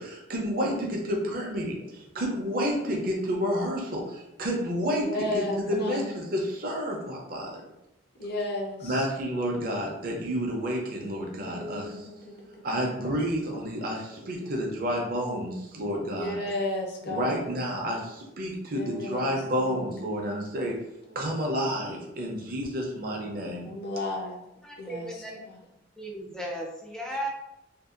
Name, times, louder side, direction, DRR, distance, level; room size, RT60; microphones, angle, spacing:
voice 1, 0.0-7.5 8.8-12.1 12.6-16.4 17.0-20.8 21.1-23.7, equal, 50° right, -1 dB, 0.6 m, -30 dB
voice 2, 5.0-6.0 8.2-9.0 11.3-12.3 16.1-17.4 18.7-19.3 19.8-20.4 23.6-24.4 24.8-25.1 25.5-25.6, left 1 dB, 60° left, -1 dB, 0.6 m, -33 dB
voice 3, 24.6-25.5 26.0-27.3, right 1 dB, 5° left, -1 dB, 0.4 m, -36 dB
2.7 x 2.3 x 2.4 m, 0.87 s
head